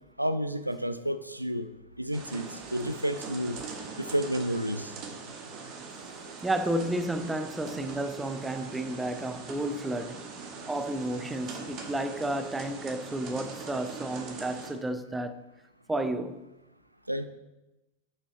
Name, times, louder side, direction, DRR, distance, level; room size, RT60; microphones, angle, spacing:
voice 1, 0.2-1.7 2.0-3.6 4.0-4.9 17.1-17.3, equal, 90° right, 0.3 m, -30 dB
sound 1, 2.1-14.7, right 4 dB, 35° right, 1.0 m, -42 dB
voice 2, 6.4-10.2 10.7-15.4 15.9-16.4, right 1 dB, 10° right, 0.4 m, -32 dB
6.0 x 5.5 x 3.9 m
figure-of-eight pair, 90°, 0 cm